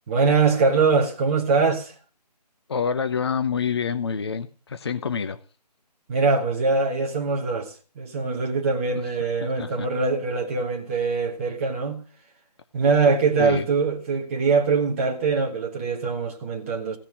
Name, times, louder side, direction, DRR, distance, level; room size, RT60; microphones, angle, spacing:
voice 1, 0.1-1.9 6.1-12.0 12.7-17.0, right 4 dB, 20° right, 1.5 m, -23 dB
voice 2, 2.7-5.4 9.6-9.9 13.4-13.7, left 6 dB, 40° left, 0.8 m, -27 dB
16.0 x 6.0 x 8.4 m
figure-of-eight pair, 160°, 21 cm